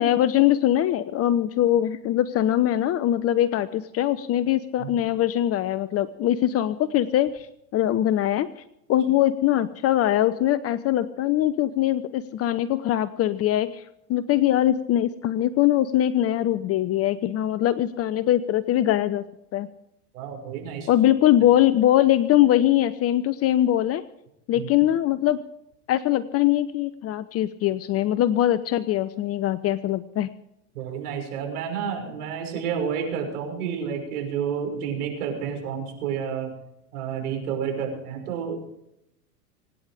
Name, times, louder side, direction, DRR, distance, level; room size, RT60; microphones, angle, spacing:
voice 1, 0.0-8.6 8.9-19.2 19.5-19.7 20.9-24.0 24.5-25.4 25.9-30.3, left 12 dB, 30° left, 14 dB, 0.7 m, -22 dB
voice 2, 20.1-20.9 24.5-24.7 30.7-36.5 36.9-38.6, right 7 dB, 65° right, 3 dB, 6.1 m, -30 dB
25.0 x 9.9 x 5.1 m, 0.81 s
hypercardioid pair, 100°, 48 cm